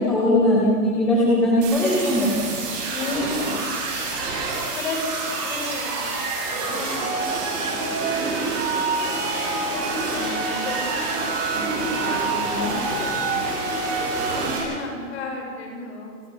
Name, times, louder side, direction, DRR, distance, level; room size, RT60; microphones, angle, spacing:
voice 1, 0.0-2.5, left 1 dB, ahead, -7 dB, 0.6 m, -19 dB
sound 1, 1.6-14.6, right 3 dB, 25° right, 8.0 m, -26 dB
voice 2, 2.9-3.9 4.5-9.6 10.0-11.0 11.3-13.6 14.1-16.1, left 3 dB, 45° left, 1 dB, 6.1 m, -34 dB
29.5 x 19.5 x 5.4 m, 2.1 s
hypercardioid pair, 165°, 47 cm